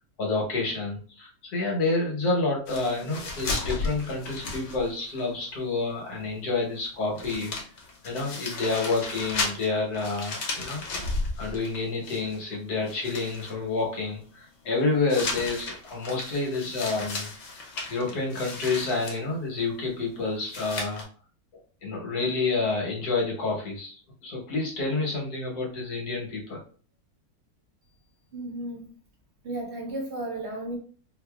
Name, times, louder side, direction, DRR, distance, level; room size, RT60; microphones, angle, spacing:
voice 1, 0.2-7.5 8.0-10.8 11.4-17.3 17.9-21.1 21.8-26.6, left 3 dB, 85° left, 1.7 m, -29 dB
sound 1, 2.7-5.2 5.5-5.6 6.8-6.9 7.2-12.5 12.9-13.5 15.1-19.2 20.5-21.0, left 3 dB, 55° left, 1.1 m, -34 dB
voice 2, 28.3-28.9 29.4-30.8, right 1 dB, 50° right, 1.1 m, -34 dB
4.6 x 2.5 x 2.3 m
omnidirectional pair, 1.6 m